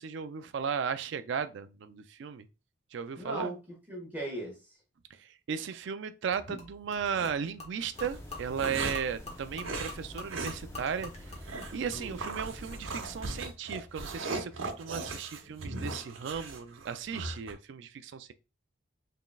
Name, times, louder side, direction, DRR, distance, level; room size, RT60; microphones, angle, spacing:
voice 1, 0.0-2.5 2.9-3.5 5.2-18.3, right 7 dB, 65° right, 0.3 m, -36 dB
voice 2, 3.2-3.6 3.9-4.6 11.9-12.2, right 1 dB, 10° right, 1.0 m, -37 dB
Gurgling / Liquid, 6.3-13.1, left 3 dB, 35° left, 1.1 m, -47 dB
sound 1, 7.0-7.3 8.0-9.1 9.6-10.0 10.3-10.6 10.9-11.0 11.5-11.8 12.2-17.5, right 3 dB, 85° right, 0.9 m, -38 dB
sound 2, 7.9-13.2, left 1 dB, 15° left, 0.8 m, -47 dB
3.8 x 3.7 x 2.3 m
head